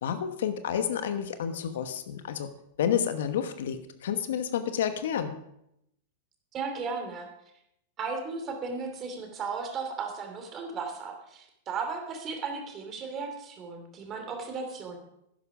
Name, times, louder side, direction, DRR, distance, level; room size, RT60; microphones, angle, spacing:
voice 1, 0.0-2.5 2.8-5.4, left 8 dB, 70° left, 10 dB, 1.1 m, -30 dB
voice 2, 6.5-7.3 8.0-15.0, right 4 dB, 35° right, 4 dB, 2.9 m, -35 dB
11.5 x 10.5 x 5.0 m, 0.80 s
hypercardioid pair, 100°, 0 cm